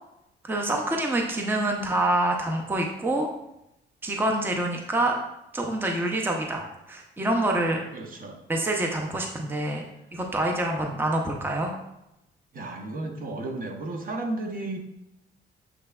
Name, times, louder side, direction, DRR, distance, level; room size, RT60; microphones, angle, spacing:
voice 1, 0.4-3.3 4.0-5.2 5.5-7.8 8.5-9.8 10.1-11.7, right 1 dB, 10° right, 1 dB, 0.6 m, -26 dB
voice 2, 7.9-8.4 9.7-9.8 12.5-14.8, right 2 dB, 45° right, 2 dB, 0.8 m, -33 dB
6.8 x 3.2 x 2.3 m, 0.86 s
cardioid pair, 90°, 20 cm